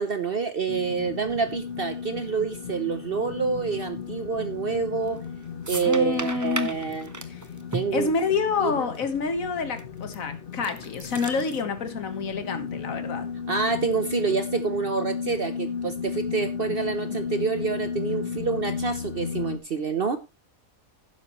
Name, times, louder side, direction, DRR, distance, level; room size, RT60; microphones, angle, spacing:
voice 1, 0.0-5.2 5.7-7.1 7.7-8.1 8.6-8.9 13.5-20.2, right 5 dB, 50° right, 0.9 m, -27 dB
sound 1, 0.7-19.6, left 6 dB, 45° left, 1.0 m, -35 dB
sound 2, 5.0-5.3 5.6-8.7 9.0-9.1 9.8-10.2 10.5-11.6, right 2 dB, 15° right, 0.8 m, -35 dB
voice 2, 5.8-6.7 7.3-7.5 7.9-13.3, left 5 dB, 75° left, 1.8 m, -28 dB
12.0 x 10.0 x 3.1 m
omnidirectional pair, 1.4 m